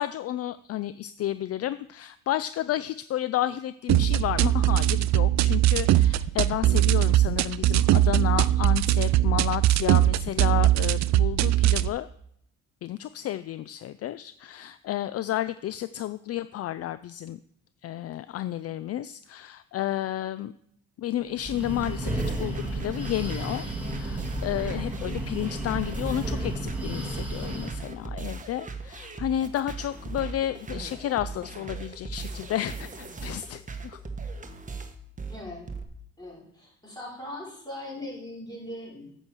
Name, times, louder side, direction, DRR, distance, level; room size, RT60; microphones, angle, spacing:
voice 1, 0.0-12.1 12.8-17.4 17.8-20.5 21.0-23.6 23.9-34.0, left 12 dB, 55° left, 14 dB, 0.4 m, -31 dB
sound 1, 3.9-11.9, right 14 dB, 65° right, 0.5 m, -21 dB
Breathing, 21.3-27.9, right 1 dB, 5° right, 2.8 m, -32 dB
sound 2, 21.5-35.8, right 4 dB, 25° right, 1.3 m, -38 dB
voice 2, 35.3-35.7 36.2-39.1, left 1 dB, 15° left, -5 dB, 5.4 m, -40 dB
8.7 x 6.2 x 7.5 m, 0.70 s
cardioid pair, 90°, 30 cm